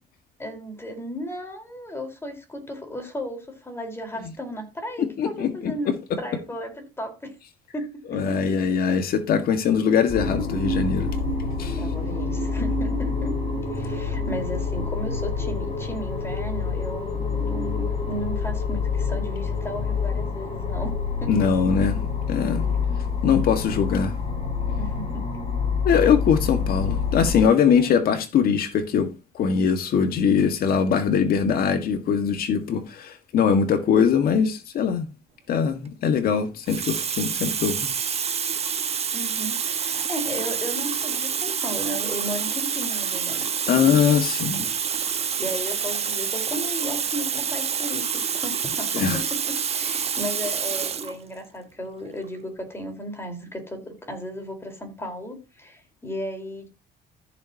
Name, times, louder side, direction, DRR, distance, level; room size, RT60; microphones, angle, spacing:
voice 1, 0.4-7.3 7.7-9.0 11.8-13.4 13.7-20.9 21.2-21.3 22.4-22.8 24.8-25.3 27.8-27.9 39.1-44.0 45.4-49.0 49.3-56.7, equal, 15° left, 4.4 m, -35 dB
voice 2, 5.0-5.7 8.1-11.1 11.6-11.8 21.3-22.6 23.2-24.1 25.8-29.1 29.4-35.1 35.5-37.9 43.7-44.7 48.9-49.2, left 7 dB, 60° left, 1.8 m, -22 dB
sound 1, 10.1-27.5, left 4 dB, 40° left, 4.1 m, -27 dB
Water tap faucet, 35.9-36.1 36.7-51.2 52.1-52.2, right 7 dB, 35° right, 1.3 m, -27 dB
14.0 x 7.0 x 2.9 m
cardioid pair, 110°, 17 cm